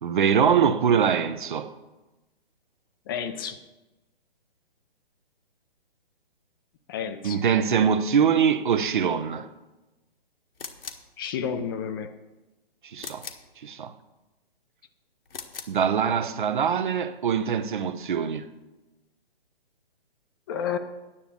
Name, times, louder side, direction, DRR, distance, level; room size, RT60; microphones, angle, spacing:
voice 1, 0.0-1.7 7.2-9.5 12.8-13.3 13.6-13.9 15.7-18.5, right 7 dB, 55° right, 0.9 m, -23 dB
voice 2, 3.1-3.6 6.9-7.4 11.2-12.1 20.5-20.8, left 7 dB, 25° left, 0.6 m, -30 dB
sound 1, 10.6-11.1 13.0-13.5 15.3-15.8, left 5 dB, 70° left, 1.5 m, -39 dB
10.0 x 7.0 x 8.3 m
figure-of-eight pair, 135°, 30 cm